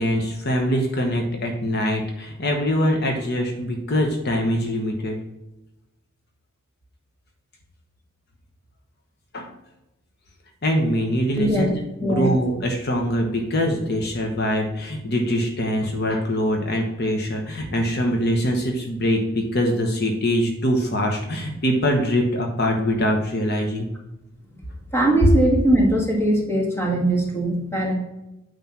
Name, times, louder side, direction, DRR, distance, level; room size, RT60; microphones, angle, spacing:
voice 1, 0.0-5.2 9.3-9.5 10.6-11.7 12.0-23.9, equal, 50° left, 2 dB, 1.1 m, -23 dB
voice 2, 11.4-11.7 12.0-12.3 24.9-27.9, right 1 dB, 10° left, -1 dB, 1.8 m, -20 dB
9.1 x 3.5 x 5.9 m, 0.96 s
head